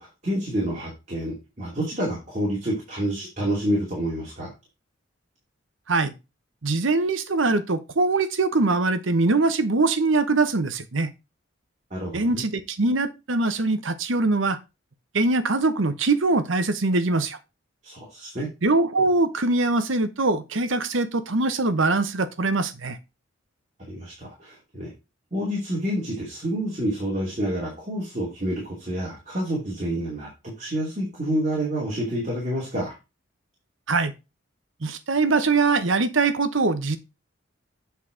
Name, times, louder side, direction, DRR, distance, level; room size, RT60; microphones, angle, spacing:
voice 1, 0.0-4.5 11.9-12.4 17.8-18.5 23.9-24.9 25.3-33.0, right 1 dB, 35° right, 2.6 m, -28 dB
voice 2, 6.6-11.1 12.1-14.6 15.1-17.4 18.6-23.0 33.9-34.1 34.8-37.0, right 3 dB, 75° right, 0.9 m, -22 dB
8.2 x 4.2 x 4.9 m
head